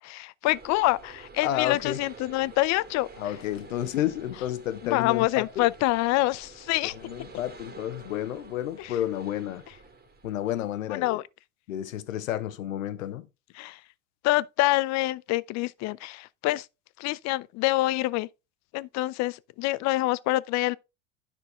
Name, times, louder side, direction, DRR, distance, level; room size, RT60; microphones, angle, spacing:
voice 1, 0.0-3.1 4.8-7.0 8.8-8.9 10.9-11.2 13.6-13.8 14.2-16.7 17.0-18.3 18.7-20.8, left 18 dB, 45° left, 0.5 m, -26 dB
sound 1, 0.5-10.6, right 4 dB, 25° right, 2.1 m, -49 dB
voice 2, 1.4-2.0 3.2-5.7 7.0-9.6 10.2-11.2 11.7-13.3, left 12 dB, 85° left, 0.9 m, -31 dB
10.0 x 6.1 x 3.5 m
hypercardioid pair, 90°, 39 cm